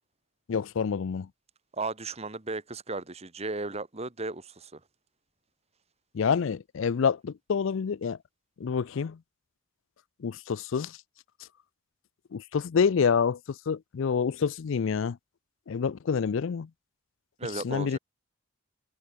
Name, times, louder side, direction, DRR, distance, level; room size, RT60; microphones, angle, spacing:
voice 1, 0.5-1.3 6.1-8.2 8.6-9.2 10.2-11.0 12.3-15.2 15.7-16.7 17.5-18.0, left 6 dB, 60° left, 0.4 m, -27 dB
voice 2, 1.7-4.8 17.4-18.0, right 3 dB, 30° right, 1.5 m, -35 dB
head